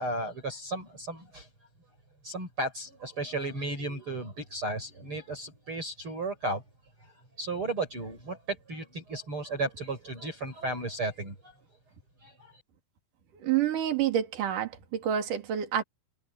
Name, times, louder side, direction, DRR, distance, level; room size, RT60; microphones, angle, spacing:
voice 1, 0.0-1.5 2.2-6.6 7.0-7.1 7.4-11.5 12.2-12.6, right 2 dB, 30° right, 6.8 m, -34 dB
voice 2, 13.4-15.8, right 10 dB, 55° right, 4.1 m, -28 dB
omnidirectional pair, 4.6 m